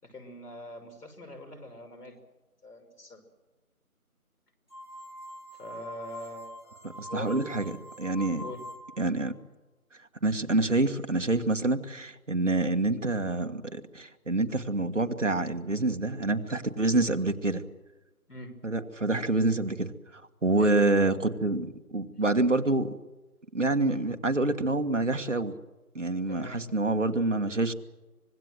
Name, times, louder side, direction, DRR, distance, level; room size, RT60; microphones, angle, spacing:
voice 1, 0.0-2.2 2.6-3.2 5.5-7.7 8.4-8.6 18.3-18.5 20.6-20.8 26.3-26.6, left 1 dB, 85° left, 5 dB, 5.8 m, -43 dB
sound 1, 4.7-9.1, equal, 20° right, 1.6 m, -44 dB
voice 2, 7.0-7.6 8.0-8.4 9.0-9.3 10.2-17.6 18.6-22.9 23.5-25.5 25.9-27.7, right 2 dB, 55° right, 7 dB, 1.6 m, -27 dB
25.0 x 20.5 x 7.8 m, 1.1 s
figure-of-eight pair, 180°, 45 cm